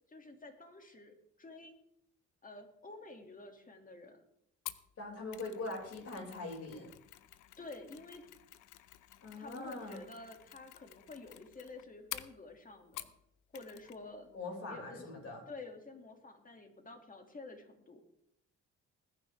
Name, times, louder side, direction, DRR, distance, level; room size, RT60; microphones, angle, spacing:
voice 1, 0.1-1.7 2.4-4.2 7.6-8.2 9.4-13.1 13.5-14.3 14.7-15.1 15.5-18.0, left 2 dB, 25° left, 4 dB, 2.5 m, -50 dB
Mechanisms, 4.7-13.2 13.5-14.0 14.3-14.4, left 14 dB, 85° left, 0.8 m, -50 dB
voice 2, 5.0-6.9 9.2-10.1 14.3-15.4, left 2 dB, 50° left, 0 dB, 6.0 m, -42 dB
20.5 x 9.6 x 3.6 m, 0.76 s
cardioid pair, 90°, 30 cm